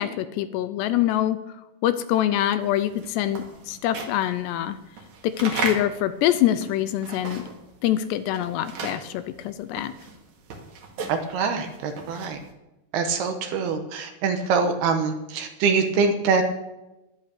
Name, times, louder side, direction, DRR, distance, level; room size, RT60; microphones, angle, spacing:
voice 1, 0.0-1.4 1.8-4.8 5.2-7.4 7.8-9.9, left 12 dB, 80° left, 12 dB, 2.6 m, -25 dB
sound 1, 2.7-7.7 8.0-12.5, right 4 dB, 55° right, 2.6 m, -35 dB
voice 2, 11.1-12.4 12.9-16.4, right 5 dB, 70° right, 6 dB, 2.7 m, -24 dB
11.5 x 11.0 x 6.8 m, 0.97 s
omnidirectional pair, 5.2 m